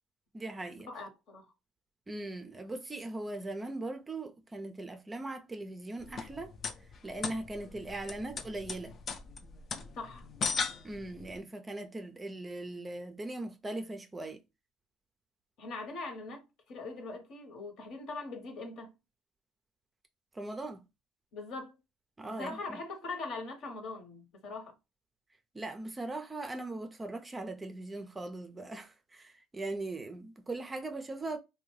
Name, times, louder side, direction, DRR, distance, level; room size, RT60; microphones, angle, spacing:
voice 1, 0.3-0.9 2.1-6.5 7.0-8.9 10.8-14.4 20.3-20.9 22.2-22.6 25.5-31.4, right 2 dB, 20° right, 0.4 m, -40 dB
voice 2, 0.9-1.5 9.9-10.3 15.6-18.9 21.3-21.8 22.2-24.7, left 3 dB, 60° left, 0.9 m, -41 dB
sound 1, 6.0-11.4, left 5 dB, 40° left, 0.4 m, -38 dB
2.6 x 2.1 x 3.0 m
cardioid pair, 110°, 0 cm